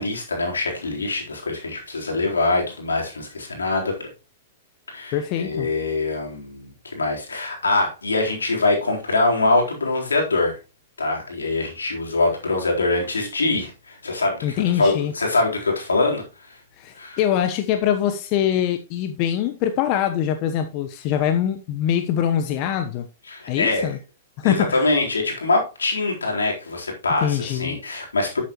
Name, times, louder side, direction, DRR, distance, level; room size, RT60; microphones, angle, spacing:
voice 1, 0.0-4.1 4.9-10.6 11.0-16.2 17.0-17.2 23.3-23.9 24.4-28.4, left 3 dB, 85° left, 0 dB, 4.0 m, -23 dB
voice 2, 5.1-5.7 14.4-15.1 16.8-23.1 23.5-24.0 24.4-24.9 27.2-27.8, left 10 dB, 45° left, 7 dB, 1.1 m, -23 dB
11.5 x 8.6 x 3.1 m, 0.29 s
hypercardioid pair, 110°, 0 cm